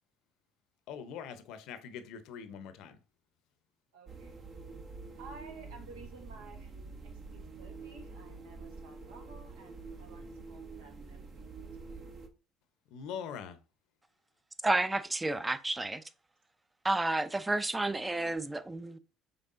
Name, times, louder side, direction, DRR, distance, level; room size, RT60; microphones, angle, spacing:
voice 1, 0.9-3.0 12.9-13.6, left 7 dB, 70° left, 0.7 m, -42 dB
voice 2, 3.9-4.4 5.2-6.7 7.0-12.0 18.1-18.4, right 3 dB, 80° right, 1.1 m, -54 dB
sound 1, 4.1-12.3, right 4 dB, 50° right, 0.9 m, -47 dB
voice 3, 14.6-16.0 16.8-19.0, right 2 dB, 15° right, 0.4 m, -31 dB
5.4 x 3.5 x 2.5 m
hypercardioid pair, 70°, 0 cm